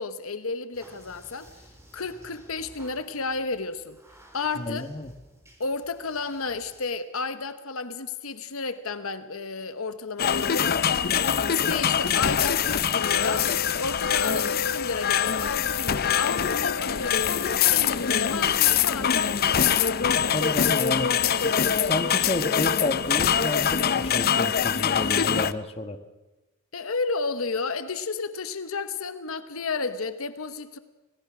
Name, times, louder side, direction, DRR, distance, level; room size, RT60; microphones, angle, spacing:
voice 1, 0.0-1.5 1.9-4.0 4.3-4.9 5.6-10.8 11.1-19.6 26.7-30.8, left 4 dB, 75° left, 11 dB, 1.1 m, -32 dB
sound 1, 0.7-6.8, right 1 dB, 15° right, 4.0 m, -54 dB
voice 2, 4.6-5.1 20.3-21.1 21.4-26.0, left 2 dB, 30° left, 8 dB, 1.4 m, -31 dB
sound 2, 10.2-25.5, left 8 dB, 45° left, 0.6 m, -24 dB
26.5 x 18.5 x 6.2 m, 1.1 s
head